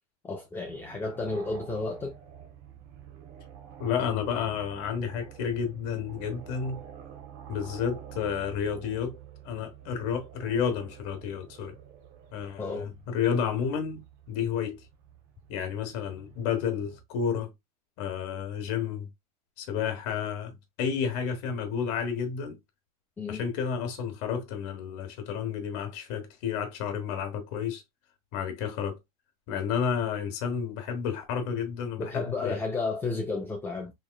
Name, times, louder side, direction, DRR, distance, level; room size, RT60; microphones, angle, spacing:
voice 1, 0.2-2.1 12.6-12.9 23.2-23.4 32.0-33.9, left 3 dB, 10° left, 0.6 m, -32 dB
sound 1, 0.7-17.0, right 9 dB, 50° right, 0.9 m, -48 dB
voice 2, 3.8-6.8 7.5-9.2 9.4-11.7 12.3-14.8 15.5-17.5 18.0-19.1 19.6-22.6 23.3-27.8 28.3-29.0 29.5-32.6, left 7 dB, 50° left, 1.2 m, -31 dB
3.6 x 3.1 x 2.2 m
supercardioid pair, 150°, 21 cm